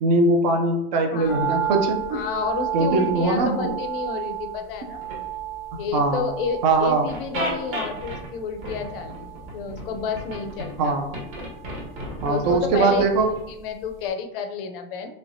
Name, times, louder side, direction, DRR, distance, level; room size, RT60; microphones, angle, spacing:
voice 1, 0.0-2.2 2.7-3.7 5.9-6.2 6.6-7.1 10.8-11.1 12.2-13.3, right 3 dB, 45° right, 4 dB, 0.5 m, -21 dB
voice 2, 1.1-1.6 2.1-5.0 5.8-11.0 12.2-15.1, left 6 dB, 60° left, 7 dB, 0.5 m, -30 dB
sound 1, 1.3-13.6 13.8-13.9, right 9 dB, 5° right, 0.8 m, -33 dB
sound 2, 4.9-5.4 6.5-6.6 7.1-8.3 8.6-10.9 11.1-13.4, right 1 dB, 65° right, 1.4 m, -33 dB
3.1 x 3.1 x 2.6 m, 0.84 s
supercardioid pair, 175°, 31 cm